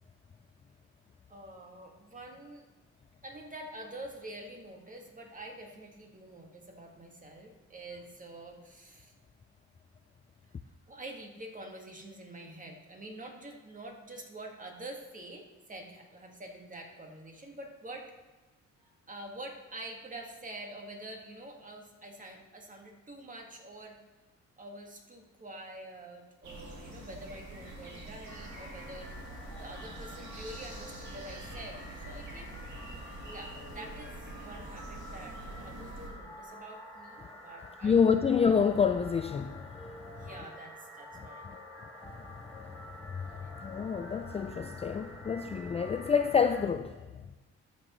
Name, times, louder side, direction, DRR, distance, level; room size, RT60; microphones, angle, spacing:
voice 1, 1.3-2.7 3.2-9.1 10.9-18.1 18.8-24.0 24.6-32.5 33.3-38.0 40.1-41.6 43.2-43.4, right 1 dB, 25° right, 1 dB, 1.8 m, -46 dB
sound 1, 26.4-36.1, right 1 dB, 65° right, 3.0 m, -45 dB
sound 2, 28.3-46.7, left 1 dB, ahead, 2.4 m, -49 dB
voice 2, 37.8-40.3 42.0-47.0, left 6 dB, 20° left, 8 dB, 0.3 m, -28 dB
13.5 x 6.2 x 3.1 m, 1.2 s
cardioid pair, 90°, 30 cm